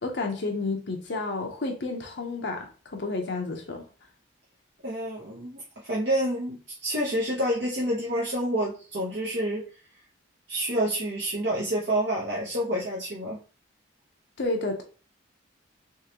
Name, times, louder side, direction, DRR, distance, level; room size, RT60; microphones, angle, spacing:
voice 1, 0.0-3.9 14.4-14.8, left 3 dB, 55° left, 0.7 m, -31 dB
voice 2, 4.8-9.6 10.5-13.4, right 1 dB, 55° right, 0.9 m, -28 dB
3.6 x 3.1 x 2.9 m
head